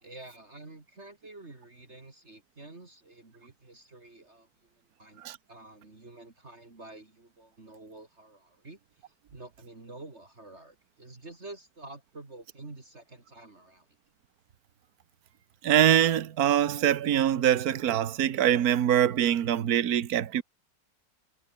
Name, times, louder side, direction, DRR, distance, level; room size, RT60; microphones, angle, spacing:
voice 1, 0.0-5.2 5.5-13.9, right 2 dB, 40° right, 3.5 m, -49 dB
voice 2, 15.6-20.4, right 10 dB, 60° right, 1.5 m, -24 dB
omnidirectional pair, 1.9 m